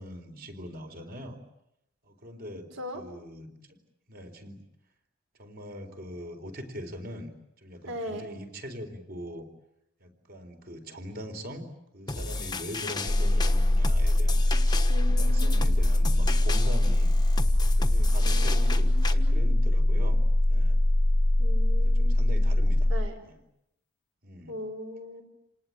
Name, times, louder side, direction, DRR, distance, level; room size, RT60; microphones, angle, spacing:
voice 1, 0.0-1.4 2.0-3.8 4.1-4.6 5.4-7.3 7.6-9.5 10.0-11.7 11.9-14.4 15.0-17.1 17.6-20.8 21.8-22.9 23.2-23.4 24.2-24.6, equal, 45° right, 6 dB, 4.1 m, -41 dB
voice 2, 7.8-8.2 14.9-15.8 18.2-19.6 21.4-22.3 22.9-23.1 24.5-25.2, left 1 dB, 65° right, 5 dB, 5.8 m, -39 dB
sound 1, 12.1-19.1, left 3 dB, 20° left, 1.3 m, -35 dB
sound 2, 13.1-23.1, left 1 dB, 50° left, 1.0 m, -22 dB
28.5 x 19.5 x 8.8 m, 0.82 s
head